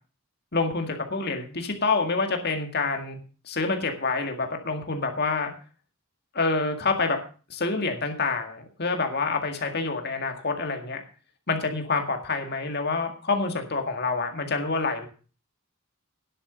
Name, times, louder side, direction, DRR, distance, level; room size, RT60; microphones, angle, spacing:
voice 1, 0.5-3.2 3.5-5.5 6.3-7.2 7.5-11.0 11.5-15.1, left 3 dB, 50° left, 5 dB, 1.9 m, -27 dB
10.5 x 7.9 x 6.7 m, 0.38 s
head